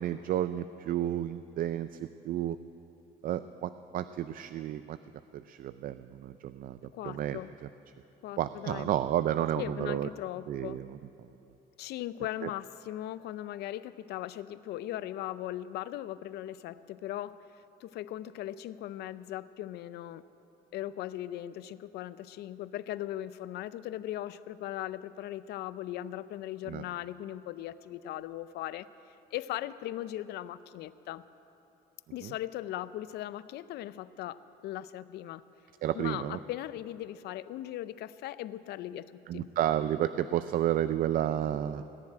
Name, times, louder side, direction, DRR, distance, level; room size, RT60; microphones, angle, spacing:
voice 1, 0.0-2.6 3.2-5.0 5.3-7.4 8.4-10.1 10.5-11.0 12.4-12.5 26.7-26.8 32.2-32.3 35.8-36.4 39.3-41.8, right 11 dB, 55° right, 12 dB, 0.4 m, -31 dB
voice 2, 6.9-7.5 8.2-8.9 9.5-10.8 11.8-17.4 17.8-20.2 20.7-31.2 32.1-35.4 35.9-39.5, left 13 dB, 75° left, 16 dB, 0.5 m, -39 dB
18.5 x 7.3 x 10.0 m, 2.9 s
cardioid pair, 110°, 17 cm